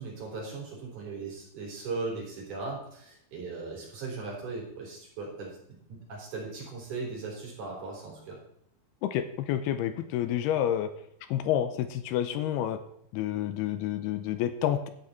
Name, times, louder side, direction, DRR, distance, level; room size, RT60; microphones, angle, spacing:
voice 1, 0.0-5.5 5.9-8.4, right 3 dB, 50° right, -3 dB, 4.8 m, -38 dB
voice 2, 9.0-10.9 11.3-12.8 13.1-14.9, left 11 dB, 85° left, 10 dB, 2.6 m, -29 dB
11.5 x 9.4 x 4.1 m, 0.74 s
omnidirectional pair, 4.7 m